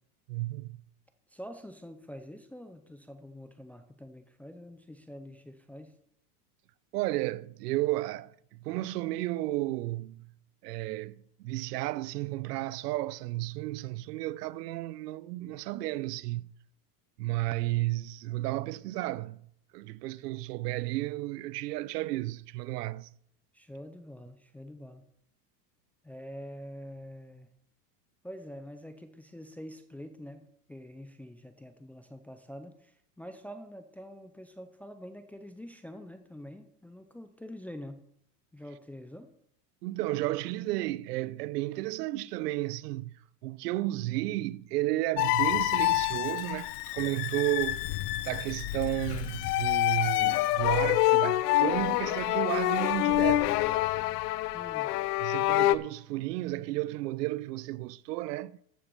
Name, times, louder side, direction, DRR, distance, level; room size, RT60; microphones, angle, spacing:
voice 1, 0.3-0.8 6.9-10.3 10.6-16.5 17.2-19.5 19.7-23.1 39.8-47.8 48.2-53.6 55.2-58.6, right 17 dB, 80° right, 0.7 m, -33 dB
voice 2, 1.3-6.0 23.5-25.1 26.0-27.5 28.2-38.0 38.5-39.3 54.5-55.0, equal, 5° left, 0.4 m, -46 dB
sound 1, 45.2-55.8, left 17 dB, 75° left, 0.7 m, -27 dB
Camera, 45.3-50.6, left 9 dB, 25° left, 1.0 m, -53 dB
14.0 x 7.0 x 5.3 m
supercardioid pair, 135°, 47 cm